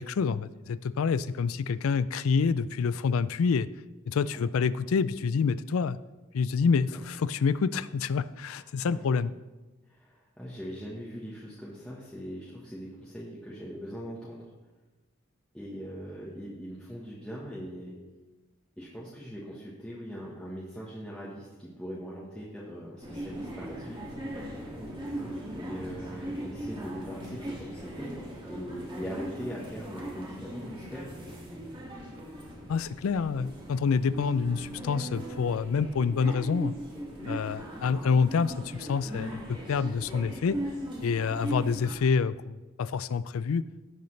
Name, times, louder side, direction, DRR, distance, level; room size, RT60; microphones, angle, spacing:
voice 1, 0.0-3.7 4.1-6.0 6.3-9.3 32.7-36.7 37.3-40.6 41.0-43.6, left 5 dB, 85° left, 17 dB, 0.4 m, -27 dB
voice 2, 8.4-9.1 9.9-14.5 15.5-18.0 18.8-24.0 25.5-31.1 33.3-33.5, equal, 5° left, -7 dB, 1.3 m, -41 dB
sound 1, 23.0-41.9, right 1 dB, 25° right, 1.8 m, -39 dB
16.0 x 6.7 x 3.3 m, 1.1 s
head